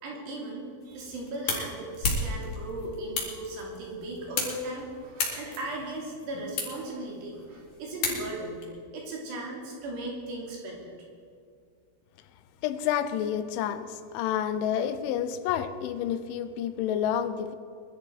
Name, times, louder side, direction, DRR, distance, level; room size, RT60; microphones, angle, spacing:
voice 1, 0.0-8.6 8.9-10.9, right 1 dB, 65° right, -2 dB, 5.2 m, -37 dB
sound 1, 0.8-8.6, left 3 dB, 50° left, 4.2 m, -35 dB
voice 2, 12.6-17.6, left 9 dB, 90° left, 12 dB, 3.3 m, -29 dB
22.0 x 12.5 x 4.8 m, 2.3 s
omnidirectional pair, 5.4 m